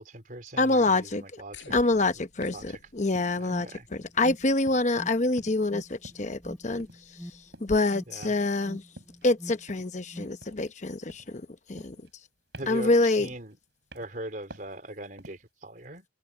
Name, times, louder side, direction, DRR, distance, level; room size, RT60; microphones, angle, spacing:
voice 1, 0.0-1.7 2.2-2.8 3.4-3.9 8.1-8.3 12.6-13.6 13.9-16.1, right 1 dB, 45° right, 4.5 m, -41 dB
voice 2, 0.6-1.2 1.7-3.7 3.9-8.8 9.2-12.0 12.7-13.3, left 2 dB, 40° left, 0.9 m, -26 dB
sound 1, 0.9-1.1 1.7-2.0 2.4-2.7 3.2-3.6 3.9-4.3 4.7-5.0 5.4-5.7 6.0-6.3 6.8-7.1 7.5-7.8 8.2-8.6 9.0-9.3 9.7-10.0 10.4-10.8 11.1-11.4 11.8-12.3 12.5-12.9 13.2-13.5 13.9-14.2 14.5-14.8 15.2-15.5, right 1 dB, 65° right, 7.1 m, -49 dB
sound 2, 1.5-7.5, left 3 dB, 90° left, 5.7 m, -54 dB
Alarm, 3.0-10.4, equal, 5° right, 4.2 m, -46 dB
open air
head